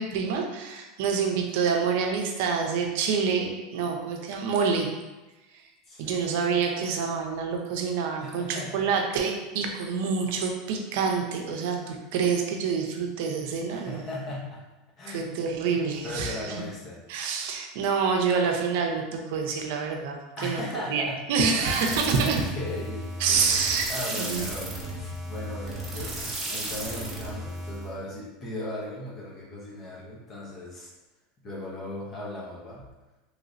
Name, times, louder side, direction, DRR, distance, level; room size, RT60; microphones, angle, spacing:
voice 1, 0.0-4.9 6.0-14.0 15.1-16.4 17.1-20.6 20.9-22.4 23.2-24.5, right 5 dB, 70° right, 3 dB, 0.6 m, -27 dB
voice 2, 5.9-6.3 8.2-8.9 13.7-14.6 15.0-15.3 15.7-17.0 20.4-21.2 21.6-23.6 23.9-26.2 26.4-30.9 31.4-32.9, left 1 dB, 30° left, -4 dB, 0.7 m, -37 dB
sound 1, 21.6-27.9, right 1 dB, 25° right, 0.8 m, -34 dB
3.1 x 3.0 x 2.5 m, 1.1 s
supercardioid pair, 135°, 0 cm